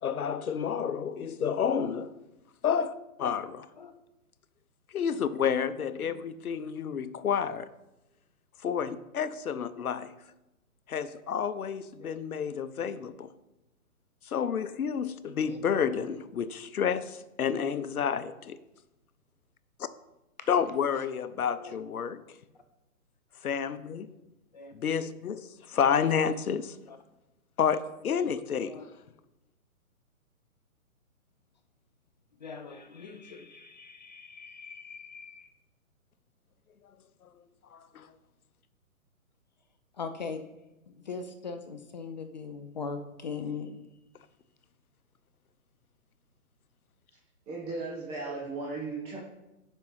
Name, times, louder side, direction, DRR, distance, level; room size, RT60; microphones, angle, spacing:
voice 1, 0.0-2.2 2.6-2.9 3.2-3.7 4.9-7.7 8.6-10.1 10.9-13.3 14.3-18.6 19.8-19.9 20.5-22.2 23.4-24.1 24.7-26.8 27.6-28.8 37.7-38.1, left 7 dB, 75° left, 0.8 m, -30 dB
voice 2, 32.4-35.5 39.9-40.4 40.9-43.7, left 5 dB, 30° left, 0.5 m, -40 dB
voice 3, 47.5-49.2, right 3 dB, 15° right, 1.0 m, -36 dB
7.3 x 5.4 x 5.5 m
hypercardioid pair, 140°, 44 cm